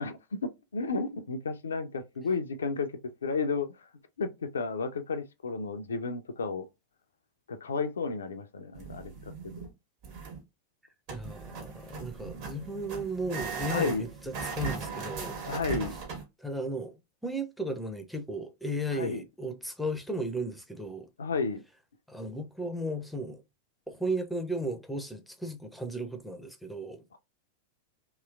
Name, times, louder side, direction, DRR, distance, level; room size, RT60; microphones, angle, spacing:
voice 1, 0.0-2.9 3.2-3.7 4.2-6.7 7.5-9.1 13.7-14.0 15.5-16.0 18.9-19.2 21.2-21.6 27.1-27.2, left 4 dB, 70° left, 0.4 m, -32 dB
sound 1, 8.7-9.7 10.0-10.4 11.1-16.2, right 5 dB, 45° right, 1.3 m, -38 dB
voice 2, 11.1-15.4 16.4-21.1 22.1-23.4 23.9-27.0, right 1 dB, ahead, 0.5 m, -35 dB
2.9 x 2.9 x 2.3 m
figure-of-eight pair, 90°, 0 cm